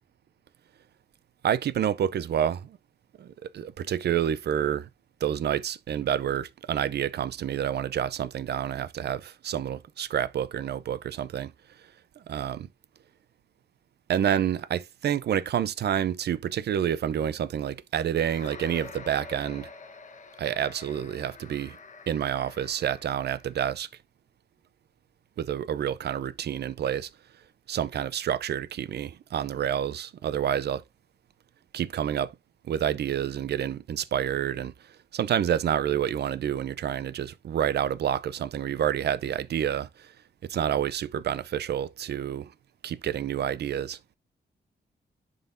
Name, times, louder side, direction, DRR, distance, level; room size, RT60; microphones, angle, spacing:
voice 1, 1.4-2.8 3.2-4.9 5.2-11.5 12.2-12.7 14.1-19.7 20.4-21.8 22.1-23.9 25.4-27.1 27.7-30.8 31.7-32.3 32.7-34.7 35.1-40.1 40.4-42.5 42.8-44.0, right 9 dB, 70° right, 0.6 m, -28 dB
sound 1, 18.2-23.6, left 4 dB, 45° left, 1.1 m, -47 dB
11.0 x 3.8 x 2.6 m
cardioid pair, 80°, 18 cm